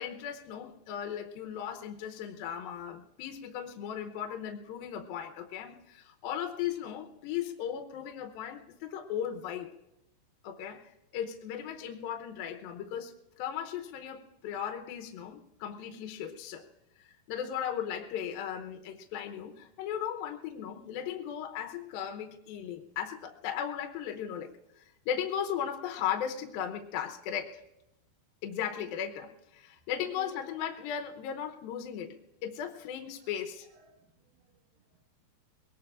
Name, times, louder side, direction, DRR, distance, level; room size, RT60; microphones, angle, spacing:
voice 1, 0.0-9.7 10.4-16.6 17.0-24.5 24.8-27.6 28.4-32.2 32.4-33.7, left 9 dB, 75° left, 2.4 m, -37 dB
voice 2, 30.0-30.4 33.2-33.3 33.7-35.0, right 7 dB, 80° right, 3.8 m, -54 dB
23.0 x 19.5 x 2.5 m
omnidirectional pair, 4.9 m